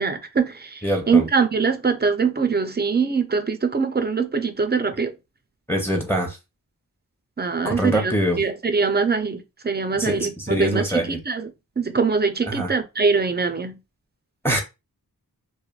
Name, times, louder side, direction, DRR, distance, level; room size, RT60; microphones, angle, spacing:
voice 1, 0.0-5.1 7.4-11.5 11.8-13.8, right 5 dB, 25° right, 0.4 m, -23 dB
voice 2, 0.8-1.2 5.7-6.4 7.6-8.4 9.9-11.2 12.5-12.7 14.4-14.6, equal, 5° left, 0.7 m, -24 dB
3.1 x 2.1 x 2.3 m
wide cardioid pair, 60°, 38 cm